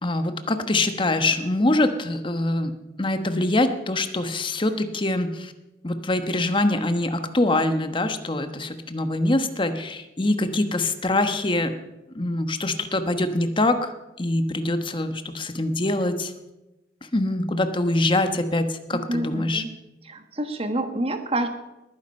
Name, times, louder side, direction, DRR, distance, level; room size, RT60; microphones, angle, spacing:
voice 1, 0.0-2.7 3.0-5.5 5.8-11.8 12.1-13.9 14.2-16.3 17.1-19.6, left 2 dB, 30° left, 8 dB, 1.2 m, -24 dB
voice 2, 18.9-19.7 20.1-21.5, right 1 dB, 35° right, 7 dB, 1.5 m, -28 dB
20.0 x 9.6 x 5.5 m, 0.98 s
head